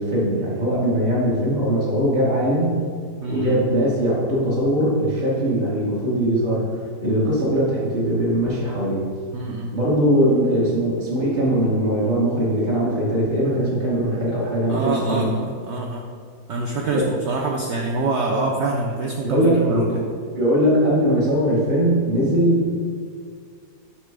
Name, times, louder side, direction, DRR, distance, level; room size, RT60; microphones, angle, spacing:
voice 1, 0.0-2.8 3.3-9.1 9.7-15.3 16.8-17.1 18.3-18.4 19.2-20.0 20.3-22.9, equal, 30° right, -8 dB, 1.2 m, -21 dB
voice 2, 3.2-3.6 9.3-9.8 14.7-16.0 16.5-19.9, right 3 dB, 75° right, 0 dB, 0.6 m, -25 dB
5.1 x 4.3 x 4.7 m, 2.1 s
omnidirectional pair, 1.7 m